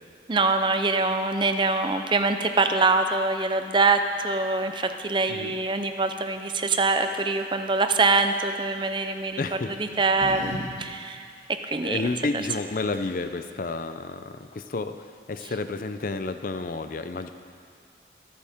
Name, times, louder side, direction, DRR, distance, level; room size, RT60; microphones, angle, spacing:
voice 1, 0.3-9.4 9.8-11.2 11.5-12.0, right 3 dB, 25° right, 8 dB, 0.5 m, -24 dB
sound 1, 8.1-8.5 9.5-10.6 10.9-11.0 12.6-12.7 12.9-13.4, right 1 dB, 85° right, 2.6 m, -39 dB
voice 2, 9.4-9.7 11.8-17.3, left 3 dB, 45° left, 9 dB, 0.5 m, -31 dB
23.5 x 8.8 x 3.6 m, 2.2 s
head